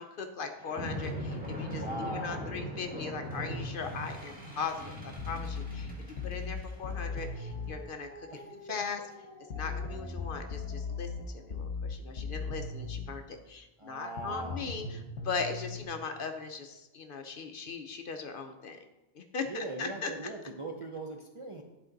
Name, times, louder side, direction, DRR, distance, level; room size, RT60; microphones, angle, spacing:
voice 1, 0.0-4.8 5.0-5.9 6.2-9.0 9.5-11.1 11.5-18.8 19.1-20.1, left 5 dB, 55° left, 6 dB, 0.7 m, -39 dB
sound 1, 0.6-11.2, equal, 10° right, 1.4 m, -42 dB
voice 2, 1.7-2.5 8.3-8.4 13.8-14.6 19.5-21.6, right 1 dB, 40° right, 1 dB, 0.4 m, -40 dB
sound 2, 5.2-7.8 9.5-13.1 14.2-15.8, left 4 dB, 75° left, 1.2 m, -38 dB
10.5 x 4.3 x 3.9 m, 0.98 s
omnidirectional pair, 1.2 m